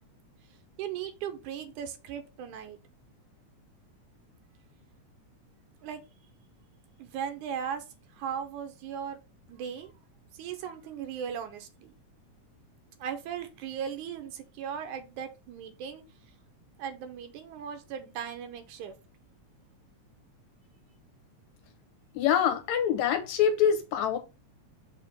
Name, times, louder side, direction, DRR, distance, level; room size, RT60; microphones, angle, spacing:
voice 1, 0.8-2.8 5.8-6.0 7.0-7.9 8.1-9.2 9.5-9.9 10.3-11.9 13.0-16.0 16.8-18.9, right 8 dB, 85° right, 2.3 m, -37 dB
voice 2, 22.1-24.2, left 8 dB, 75° left, 2.3 m, -25 dB
6.1 x 3.0 x 5.5 m
omnidirectional pair, 3.5 m